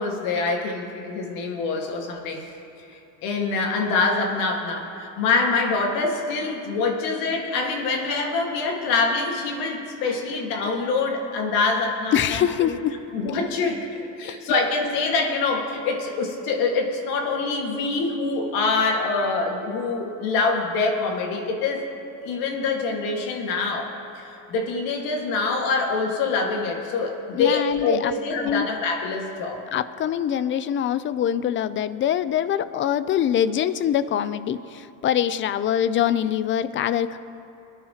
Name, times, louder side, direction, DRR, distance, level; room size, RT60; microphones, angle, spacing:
voice 1, 0.0-2.4 2.9-12.8 13.1-21.8 22.2-29.6, left 4 dB, 75° left, 1 dB, 1.9 m, -25 dB
voice 2, 12.1-12.9 27.3-28.1 28.4-28.7 29.7-37.2, left 10 dB, 35° left, 14 dB, 0.5 m, -24 dB
23.0 x 10.0 x 3.0 m, 3.0 s
cardioid pair, 130°, 35 cm